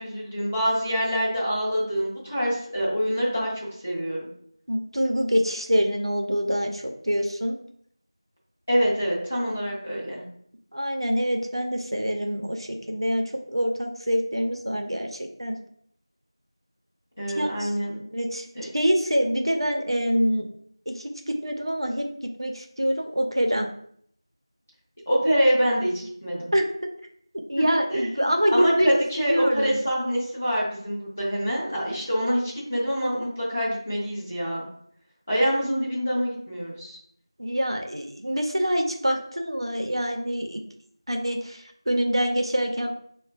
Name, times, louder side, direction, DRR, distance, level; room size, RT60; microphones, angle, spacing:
voice 1, 0.0-4.3 8.7-10.2 17.2-18.0 18.5-18.7 25.1-26.5 27.6-27.7 27.9-34.6 35.3-37.0, equal, 20° left, -5 dB, 0.6 m, -26 dB
voice 2, 4.7-7.6 10.7-13.2 13.5-15.6 17.4-17.7 18.1-20.5 20.9-22.0 22.4-23.7 26.5-26.6 27.5-28.9 29.3-29.8 37.4-40.6 41.1-42.9, equal, 70° right, 3 dB, 0.6 m, -25 dB
5.6 x 2.1 x 2.4 m, 0.65 s
figure-of-eight pair, 175°, 3 cm